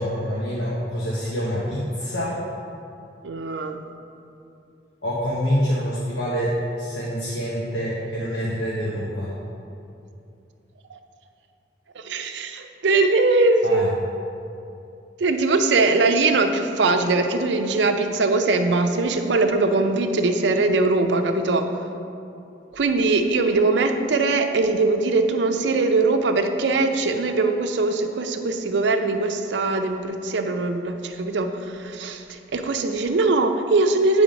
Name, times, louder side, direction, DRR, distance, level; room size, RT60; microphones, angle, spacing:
voice 1, 0.0-2.4 5.0-9.3 13.6-13.9, equal, 80° left, -7 dB, 1.1 m, -26 dB
voice 2, 3.2-3.8 11.9-13.9 15.2-21.7 22.7-34.2, right 3 dB, 75° right, 6 dB, 0.5 m, -21 dB
8.9 x 3.5 x 5.1 m, 2.7 s
head